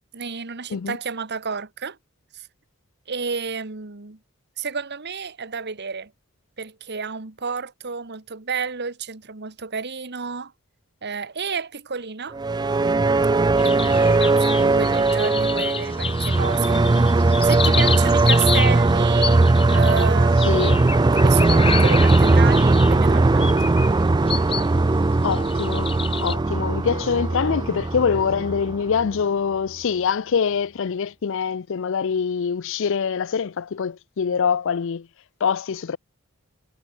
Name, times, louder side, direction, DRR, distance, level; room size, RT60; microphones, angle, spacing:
voice 1, 0.1-2.0 2.3-2.5 3.1-4.2 4.6-6.1 6.6-10.5 11.0-12.4 13.6-16.9 17.4-19.4 19.7-20.7 21.2-23.6, right 5 dB, 55° right, 1.6 m, -31 dB
sound 1, 12.3-29.2, right 2 dB, 20° right, 0.4 m, -19 dB
sound 2, 13.6-24.8 25.1-26.4, left 7 dB, 25° left, 0.9 m, -30 dB
voice 2, 20.5-20.8 25.2-25.9 26.2-35.1 35.4-36.0, left 6 dB, 65° left, 0.5 m, -24 dB
head